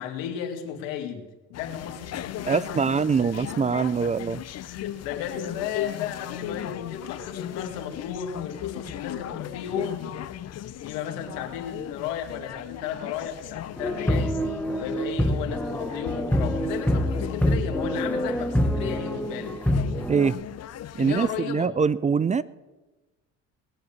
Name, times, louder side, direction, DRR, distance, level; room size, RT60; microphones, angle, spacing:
voice 1, 0.0-3.7 4.0-4.1 4.6-10.1 10.8-14.4 14.8-19.5 21.0-21.7, left 8 dB, 85° left, 4 dB, 2.2 m, -34 dB
sound 1, 1.5-21.4, left 11 dB, 50° left, 0.8 m, -37 dB
voice 2, 2.4-4.4 20.1-20.4 21.0-22.4, right 5 dB, 20° right, 18 dB, 0.4 m, -23 dB
sound 2, 13.8-20.3, equal, 5° left, 1.2 m, -26 dB
19.5 x 7.9 x 7.3 m, 1.2 s
supercardioid pair, 85°, 33 cm